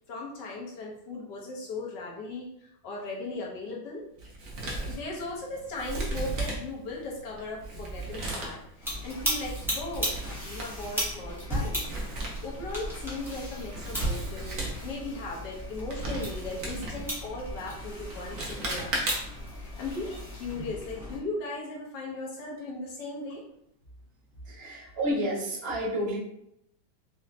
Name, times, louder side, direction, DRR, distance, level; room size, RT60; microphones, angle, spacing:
voice 1, 0.1-4.0 4.9-19.1 19.5-23.4, left 2 dB, 70° left, -3 dB, 1.3 m, -38 dB
Male speech man speaking, 4.2-19.5, right 2 dB, 55° right, 1.0 m, -37 dB
sound 1, 8.8-21.2, equal, ahead, 0.5 m, -36 dB
voice 2, 24.4-26.2, equal, 90° right, -6 dB, 2.1 m, -30 dB
5.2 x 2.0 x 2.7 m, 0.77 s
omnidirectional pair, 2.1 m